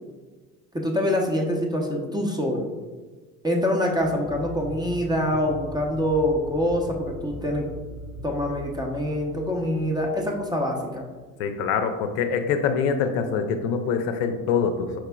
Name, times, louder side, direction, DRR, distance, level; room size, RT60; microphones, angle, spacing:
voice 1, 0.7-2.7 3.4-7.7 8.2-11.1, left 1 dB, 10° right, 1 dB, 0.6 m, -25 dB
sound 1, 3.9-11.2, equal, 20° left, 0.8 m, -40 dB
voice 2, 11.4-15.0, left 6 dB, 65° left, 6 dB, 0.6 m, -24 dB
4.7 x 4.5 x 2.3 m, 1.4 s
hypercardioid pair, 65°, 44 cm